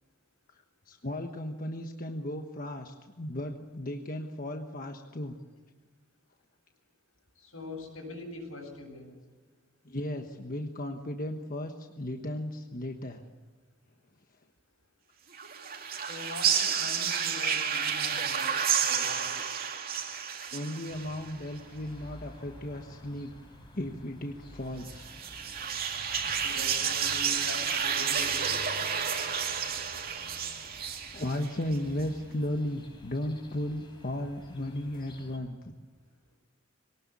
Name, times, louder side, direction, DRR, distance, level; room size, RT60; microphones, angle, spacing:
voice 1, 0.5-5.4 9.8-13.2 20.5-23.3 23.7-25.1 31.1-35.7, left 1 dB, 45° left, 4 dB, 1.3 m, -35 dB
voice 2, 7.4-9.1 15.9-19.4 26.2-28.5, left 3 dB, 85° left, 2 dB, 8.0 m, -43 dB
sound 1, 15.3-21.3 24.8-31.8, right 7 dB, 45° right, 2.5 m, -30 dB
sound 2, 20.9-35.4, left 1 dB, 25° left, 3.9 m, -51 dB
23.0 x 19.0 x 8.5 m, 1.4 s
head